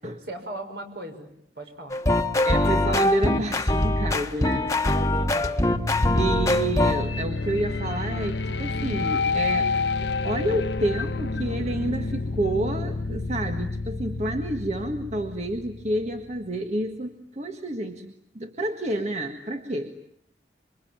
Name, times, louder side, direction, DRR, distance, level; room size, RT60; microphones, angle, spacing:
voice 1, 0.2-1.3 1.6-2.0 4.3-5.6, right 1 dB, 65° right, 6 dB, 6.0 m, -38 dB
sound 1, 1.9-7.0, left 1 dB, 15° left, 1.5 m, -22 dB
voice 2, 2.4-4.6 6.2-9.7 10.0-19.9, right 1 dB, 35° right, 5 dB, 1.6 m, -29 dB
sound 2, 5.6-16.5, left 3 dB, 70° left, 1.1 m, -29 dB
26.5 x 24.5 x 9.0 m, 0.68 s
head